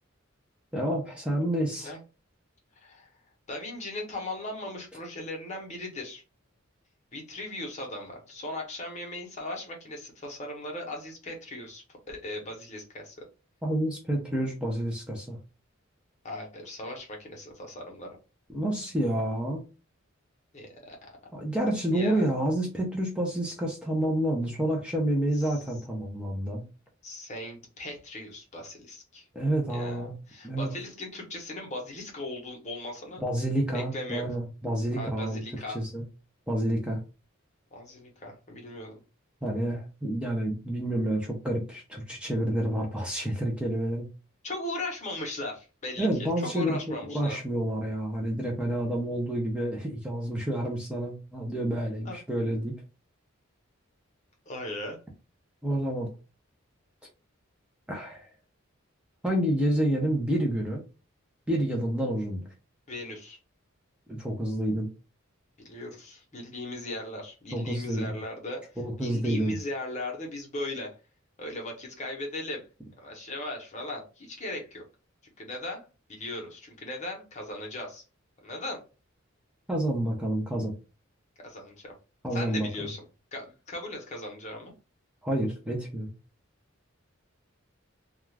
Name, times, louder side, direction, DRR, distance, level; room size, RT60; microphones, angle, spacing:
voice 1, 0.7-2.0 13.6-15.4 18.5-19.6 21.3-26.6 29.3-30.1 30.4-30.7 33.2-35.4 35.7-36.0 36.5-37.0 39.4-44.0 46.0-52.7 55.6-56.1 57.9-58.3 59.2-60.8 61.5-62.5 64.1-64.9 67.5-68.2 68.8-69.6 79.7-80.7 82.2-82.9 85.2-86.1, right 1 dB, 5° right, -1 dB, 0.5 m, -29 dB
voice 2, 3.5-6.2 7.1-13.2 16.2-18.2 20.5-21.1 21.9-22.2 25.3-25.6 27.0-29.3 29.7-33.2 33.7-34.3 35.0-35.8 37.7-39.0 44.4-47.4 52.0-52.2 54.5-55.0 62.9-63.4 65.6-68.6 69.0-70.9 71.4-72.6 73.0-74.8 75.4-75.8 76.1-78.0 78.4-78.8 81.4-81.9 82.3-83.0 83.3-84.7, left 1 dB, 35° left, 1 dB, 0.8 m, -38 dB
2.3 x 2.3 x 3.2 m, 0.31 s
head